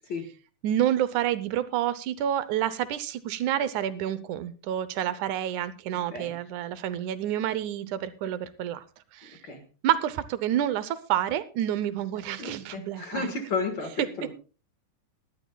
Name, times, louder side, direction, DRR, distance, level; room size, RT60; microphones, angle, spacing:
voice 1, 0.6-8.8 9.1-9.4 9.8-13.3, right 11 dB, 80° right, 15 dB, 2.2 m, -28 dB
voice 2, 12.4-14.3, left 4 dB, 45° left, 6 dB, 1.9 m, -33 dB
20.5 x 12.5 x 2.3 m, 0.34 s
omnidirectional pair, 3.5 m